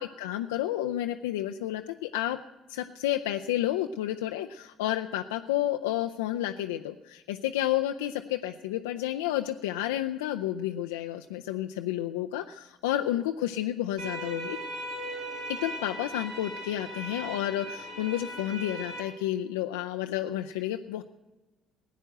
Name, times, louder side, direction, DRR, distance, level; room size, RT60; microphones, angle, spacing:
voice 1, 0.0-2.4 2.7-14.6 15.5-21.0, left 13 dB, 80° left, 5 dB, 0.5 m, -31 dB
sound 1, 14.0-19.0, right 1 dB, 80° right, 4.8 m, -38 dB
16.5 x 9.1 x 7.8 m, 1.1 s
hypercardioid pair, 55°, 0 cm